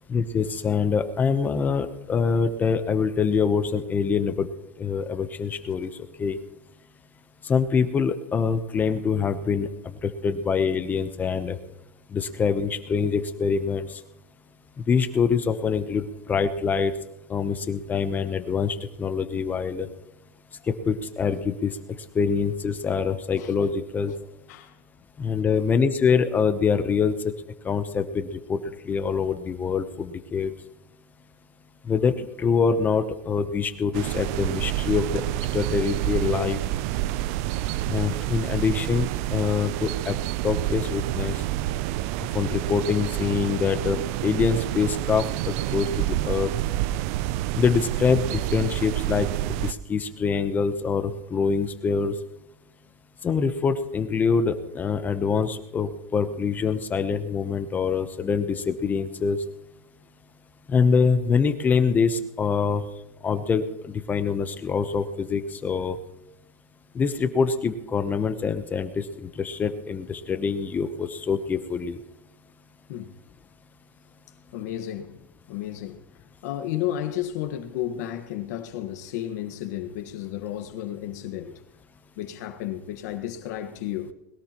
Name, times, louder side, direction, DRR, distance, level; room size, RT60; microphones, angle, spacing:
voice 1, 0.1-4.5 4.8-5.9 6.2-6.4 7.4-9.7 10.0-11.6 12.1-14.0 14.9-16.9 17.3-19.9 20.7-21.7 22.1-24.1 25.2-27.1 27.6-28.6 28.8-30.5 31.9-35.2 35.5-36.6 37.9-40.2 40.4-41.3 42.3-46.5 47.6-49.3 49.6-52.1 53.2-59.4 60.7-62.8 63.2-66.0 66.9-72.0, left 5 dB, 20° left, 0.8 m, -25 dB
voice 2, 23.4-23.7 24.1-24.2 24.5-24.8 32.2-32.3 72.9-73.1 74.5-75.2 75.5-76.0 76.4-81.6 82.2-84.1, left 11 dB, 75° left, 1.4 m, -32 dB
sound 1, 33.9-49.7, right 15 dB, 55° right, 0.5 m, -28 dB
21.0 x 17.5 x 3.0 m
supercardioid pair, 155°, 9 cm